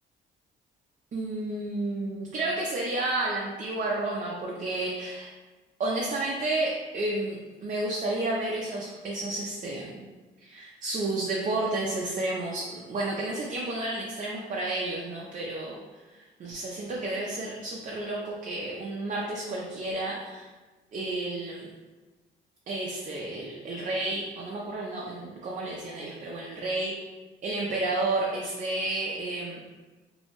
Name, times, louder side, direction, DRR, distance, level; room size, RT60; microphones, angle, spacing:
voice 1, 1.1-5.3 5.8-10.0 10.4-20.5 20.9-21.7 22.7-26.9 27.4-29.6, right 2 dB, 40° right, -3 dB, 0.4 m, -31 dB
2.6 x 2.0 x 2.9 m, 1.2 s
cardioid pair, 90°, 20 cm